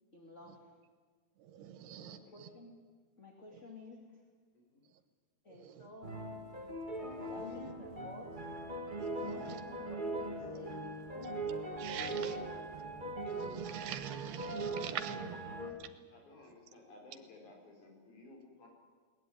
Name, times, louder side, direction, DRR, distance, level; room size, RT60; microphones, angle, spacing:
voice 1, 0.1-0.8 2.3-2.7 3.2-4.2 5.4-6.2 7.3-8.4 9.2-11.3 12.1-12.7, left 2 dB, 20° left, 1 dB, 2.3 m, -52 dB
voice 2, 1.4-2.5 5.5-5.9 7.0-7.7 9.0-9.6 11.8-12.4 13.3-15.4 15.8-15.9, right 10 dB, 85° right, 10 dB, 3.4 m, -44 dB
voice 3, 2.0-2.4 4.5-4.9 15.1-15.8 16.1-18.7, left 2 dB, 50° left, 1 dB, 6.5 m, -57 dB
sound 1, 6.0-15.7, right 2 dB, 50° right, 0.5 m, -40 dB
21.5 x 19.5 x 9.6 m, 1.5 s
omnidirectional pair, 4.5 m